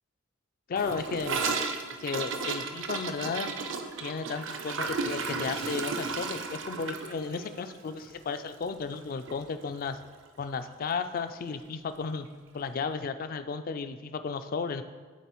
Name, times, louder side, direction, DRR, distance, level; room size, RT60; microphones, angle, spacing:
voice 1, 0.7-1.4 2.0-3.6 4.0-10.0 10.4-12.3 12.5-14.8, left 5 dB, 45° left, 10 dB, 0.3 m, -34 dB
Gurgling / Toilet flush, 0.8-9.0 9.3-9.4 9.7-10.1 10.4-10.5 10.8-10.9 11.9-12.0, right 4 dB, 65° right, 0.5 m, -34 dB
11.0 x 4.0 x 3.0 m, 1.4 s
head